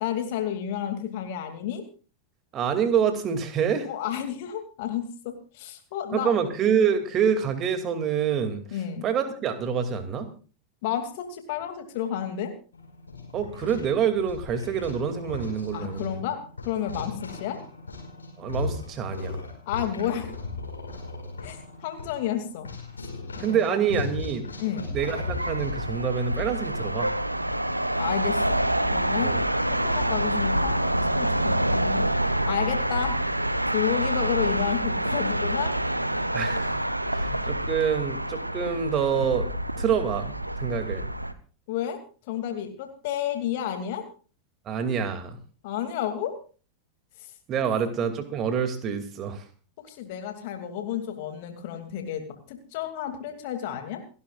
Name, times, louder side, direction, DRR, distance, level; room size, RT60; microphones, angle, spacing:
voice 1, 0.0-1.8 3.8-6.4 8.7-9.0 10.8-12.5 15.7-16.4 16.6-17.6 19.7-20.3 21.4-21.6 21.8-22.7 23.4-23.8 24.6-24.9 28.0-28.6 28.9-29.3 29.7-32.0 32.4-33.2 33.7-35.7 41.7-42.0 42.3-44.0 45.6-46.3 49.9-54.0, left 10 dB, 50° left, 6 dB, 2.5 m, -31 dB
voice 2, 2.5-3.9 6.1-8.6 9.0-10.3 13.3-16.2 18.4-19.4 23.4-24.5 24.9-27.1 29.2-29.4 36.3-36.7 37.1-39.5 39.8-41.1 44.7-45.4 47.5-49.4, right 7 dB, 30° right, 7 dB, 2.4 m, -26 dB
sound 1, 12.7-25.9, left 3 dB, 75° left, 5.0 m, -37 dB
sound 2, 25.2-41.3, right 1 dB, 85° right, 0.9 m, -27 dB
29.0 x 11.5 x 2.4 m, 0.38 s
figure-of-eight pair, 90°, 0 cm